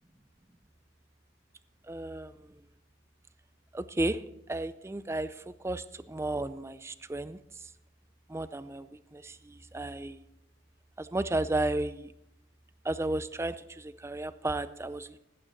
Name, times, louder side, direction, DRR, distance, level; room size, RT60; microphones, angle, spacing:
voice 1, 1.9-2.3 3.7-4.2 4.5-5.3 5.6-5.8 6.1-7.4 8.3-8.9 9.1-9.3 9.7-10.2 11.0-12.1 12.9-13.5 13.8-15.1, right 2 dB, 15° right, 14 dB, 0.4 m, -32 dB
15.5 x 12.0 x 4.1 m, 0.86 s
head